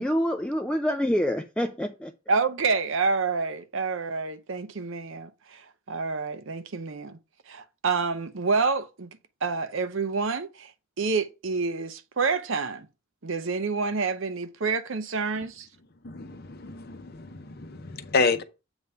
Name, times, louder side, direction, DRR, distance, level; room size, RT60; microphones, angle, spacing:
voice 1, 0.0-2.1, equal, 5° left, 0.3 m, -26 dB
voice 2, 2.3-7.2 7.5-10.7 11.0-12.9 13.2-15.7, right 4 dB, 60° right, 0.7 m, -28 dB
voice 3, 16.0-18.4, left 4 dB, 45° left, 0.7 m, -29 dB
8.0 x 3.5 x 5.4 m
head